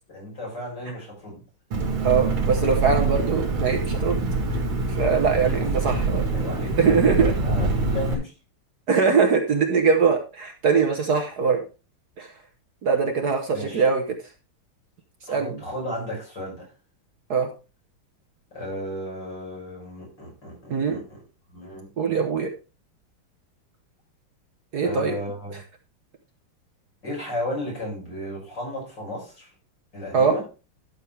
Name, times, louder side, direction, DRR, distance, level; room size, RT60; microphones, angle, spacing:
voice 1, 0.1-1.4 5.6-5.7 6.3-7.0 7.4-8.3 13.5-13.9 15.3-16.7 18.5-21.2 21.5-21.9 24.8-25.5 27.0-29.5 29.9-30.4, left 1 dB, 55° left, -3 dB, 6.7 m, -34 dB
Engine, 1.7-8.1, right 2 dB, 70° right, 2.7 m, -25 dB
voice 2, 2.0-4.2 4.9-6.3 6.8-7.3 8.9-11.6 12.2-12.3 12.8-14.0 15.3-15.6 17.3-17.5 20.7-21.0 22.0-22.5 24.7-25.2 30.1-30.4, right 5 dB, 55° right, 4 dB, 1.5 m, -22 dB
12.0 x 6.8 x 3.4 m, 0.32 s
omnidirectional pair, 2.3 m